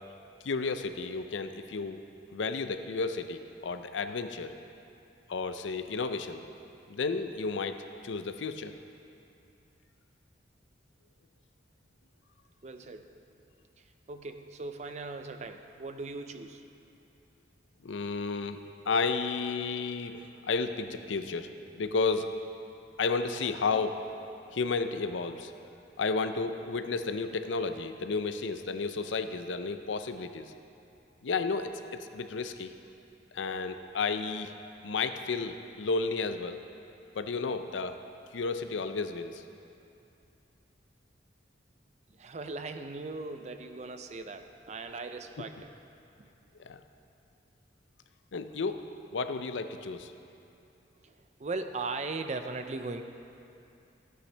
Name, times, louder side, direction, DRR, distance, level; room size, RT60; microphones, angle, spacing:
voice 1, 0.4-2.0 2.3-4.5 5.3-6.4 6.9-8.7 17.8-18.6 18.9-21.5 21.8-22.3 23.0-24.0 24.5-25.5 26.0-30.5 31.2-31.7 32.1-32.7 33.3-34.5 34.8-36.6 37.2-38.0 38.3-39.4 46.6-46.8 48.3-48.8 49.1-50.1, left 4 dB, 85° left, 9 dB, 0.5 m, -32 dB
voice 2, 12.6-13.1 13.8-16.6 42.1-45.7 46.2-46.3 51.0-53.0, right 3 dB, 40° right, 7 dB, 0.5 m, -39 dB
14.0 x 9.0 x 3.3 m, 2.7 s
head